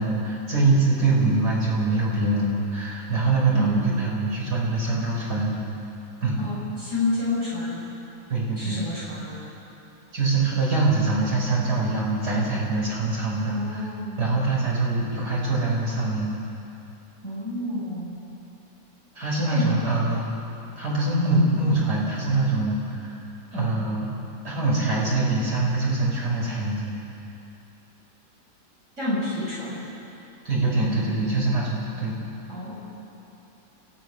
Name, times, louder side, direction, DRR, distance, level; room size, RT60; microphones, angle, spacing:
voice 1, 0.0-5.6 6.2-6.5 8.3-8.8 10.1-13.9 14.2-16.3 19.2-20.3 20.8-23.2 23.5-24.1 24.4-26.9 30.4-32.2, right 2 dB, 65° right, -5 dB, 6.0 m, -24 dB
voice 2, 3.5-3.9 6.4-7.8 8.6-9.5 13.4-14.5 17.2-18.2 19.4-19.9 29.0-29.8 30.7-30.8 32.5-32.8, left 2 dB, 45° right, -9 dB, 7.3 m, -29 dB
29.5 x 14.5 x 6.3 m, 2.9 s
omnidirectional pair, 1.8 m